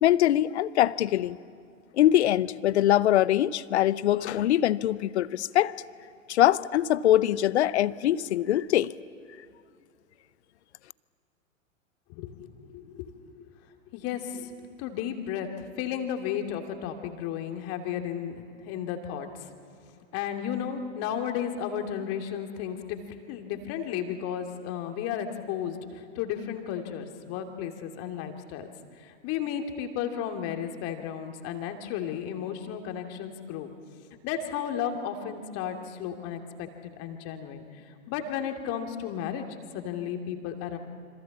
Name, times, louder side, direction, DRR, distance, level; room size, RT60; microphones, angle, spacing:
voice 1, 0.0-1.4 2.0-5.7 6.3-8.9, left 12 dB, 55° left, 20 dB, 0.8 m, -23 dB
voice 2, 12.1-13.2 13.9-15.5 15.8-19.3 20.1-23.0 23.3-28.7 29.0-33.7 34.2-37.6 38.1-39.5 39.7-40.8, left 9 dB, 35° left, 5 dB, 2.7 m, -33 dB
27.5 x 26.5 x 7.3 m, 2.4 s
figure-of-eight pair, 100°, 40 cm